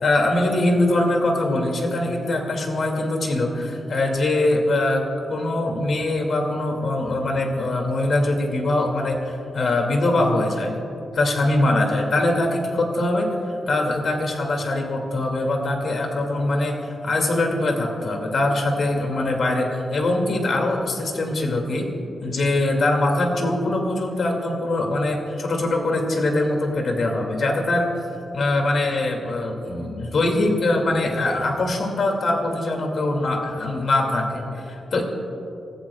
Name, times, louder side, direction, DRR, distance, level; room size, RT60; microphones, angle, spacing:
voice 1, 0.0-5.0 5.3-9.2 9.5-10.7 11.1-13.3 13.7-16.8 17.0-21.9 22.2-27.9 28.3-35.0, left 2 dB, 60° left, 2 dB, 2.4 m, -22 dB
28.5 x 14.5 x 2.4 m, 2.9 s
wide cardioid pair, 110°, 0 cm